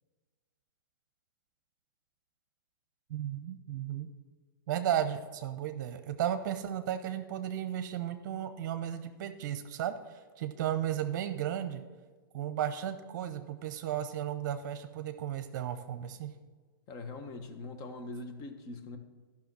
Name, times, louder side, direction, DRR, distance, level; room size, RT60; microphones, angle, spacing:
voice 1, 3.1-4.1 4.7-11.8 12.3-16.3, right 10 dB, 55° right, 9 dB, 0.7 m, -34 dB
voice 2, 16.9-19.0, left 2 dB, 30° left, 7 dB, 1.1 m, -42 dB
11.5 x 5.9 x 6.1 m, 1.4 s
hypercardioid pair, 135°, 12 cm